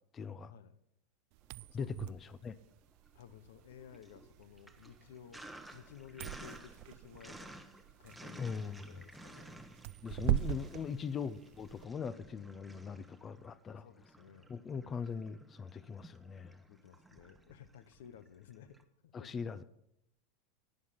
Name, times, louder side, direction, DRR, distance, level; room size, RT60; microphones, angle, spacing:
voice 1, 0.1-0.5 1.7-2.6 8.4-9.0 10.0-13.9 14.5-16.6 19.1-19.6, left 6 dB, 25° left, 16 dB, 0.5 m, -41 dB
sound 1, 1.3-11.8, right 17 dB, 60° right, 0.3 m, -41 dB
Sink (filling or washing), 1.6-2.4 2.7-18.8, right 1 dB, ahead, 1.0 m, -55 dB
voice 2, 3.1-5.4 5.7-7.6 8.0-8.6 8.9-9.7 10.7-11.0 13.8-14.5 16.7-18.8 19.0-19.3, left 9 dB, 85° left, 14 dB, 0.9 m, -55 dB
11.5 x 9.4 x 5.7 m, 0.78 s
supercardioid pair, 125°, 0 cm